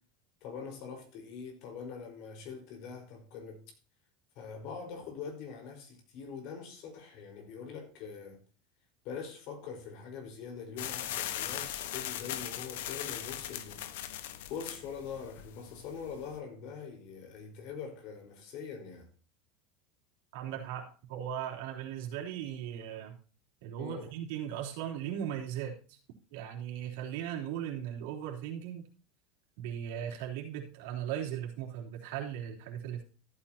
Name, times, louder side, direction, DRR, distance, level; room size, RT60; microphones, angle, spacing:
voice 1, 0.4-3.6 4.4-8.4 9.0-13.9 14.5-19.1 23.8-24.1, left 6 dB, 55° left, 4.5 m, -43 dB
sound 1, 10.8-16.4, left 12 dB, 80° left, 1.2 m, -39 dB
voice 2, 20.3-23.2 23.6-26.0 26.3-28.8 29.6-33.0, right 10 dB, 70° right, 3.5 m, -38 dB
14.5 x 9.0 x 2.8 m
supercardioid pair, 140°, 0 cm